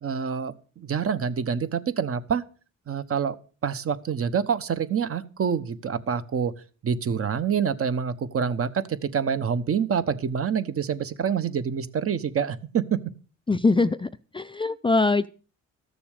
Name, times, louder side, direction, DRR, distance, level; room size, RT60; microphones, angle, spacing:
voice 1, 0.0-2.4 2.9-3.4 3.6-6.5 6.8-13.0, right 7 dB, 50° right, 12 dB, 1.1 m, -26 dB
voice 2, 13.5-14.1 14.3-15.3, left 3 dB, 15° left, 13 dB, 0.5 m, -22 dB
13.5 x 6.9 x 6.6 m, 0.38 s
cardioid pair, 90°, 30 cm